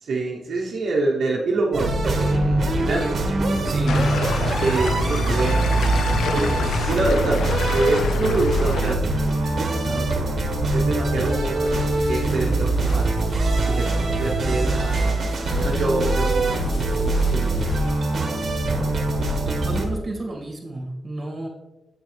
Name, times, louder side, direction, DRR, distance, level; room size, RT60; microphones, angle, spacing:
voice 1, 0.0-3.1 4.6-6.0 6.3-7.4 7.7-10.1 10.7-13.0 13.6-17.5, right 2 dB, 70° right, -2 dB, 1.0 m, -26 dB
sound 1, 1.7-19.8, right 2 dB, 55° right, 1.4 m, -23 dB
voice 2, 3.6-4.0 19.4-21.5, right 2 dB, 30° right, -1 dB, 2.1 m, -32 dB
sound 2, 3.9-9.0, left 4 dB, 90° left, 0.5 m, -27 dB
sound 3, 11.1-18.2, left 1 dB, 65° left, 1.8 m, -36 dB
8.1 x 6.3 x 3.4 m, 0.98 s
wide cardioid pair, 115°, 0 cm